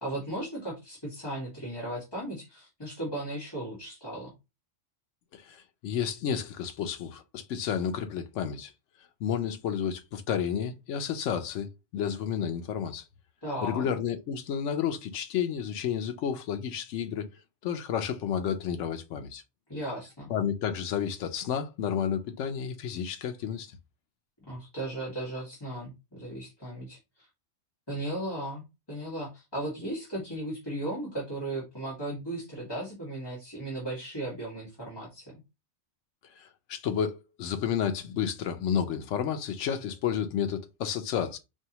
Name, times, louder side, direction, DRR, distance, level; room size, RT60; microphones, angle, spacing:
voice 1, 0.0-4.3 13.4-13.9 19.7-20.3 24.5-27.3 27.9-35.3, right 1 dB, 20° left, 1.5 m, -36 dB
voice 2, 5.3-8.7 9.2-13.0 13.6-17.3 17.6-19.4 20.3-23.7 36.4-41.4, left 8 dB, 85° left, 0.9 m, -31 dB
4.4 x 2.7 x 2.9 m
omnidirectional pair, 1.2 m